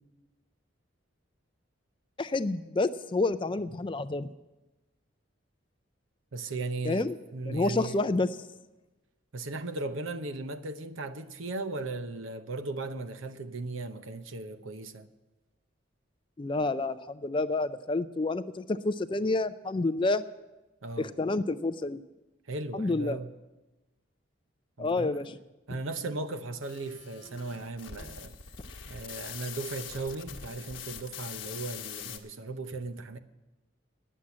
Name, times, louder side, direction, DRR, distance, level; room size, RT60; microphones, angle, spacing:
voice 1, 2.2-4.3 6.8-7.1 7.5-8.3 16.4-20.2 21.0-22.0 22.7-23.2 24.8-25.4, left 2 dB, 25° left, 0.3 m, -29 dB
voice 2, 6.3-8.0 9.3-15.1 20.8-21.2 22.5-23.3 24.8-25.2 25.7-28.3 28.9-33.2, right 3 dB, 80° right, 0.8 m, -37 dB
sound 1, 26.6-32.2, left 8 dB, 70° left, 1.2 m, -43 dB
10.0 x 7.4 x 9.5 m
head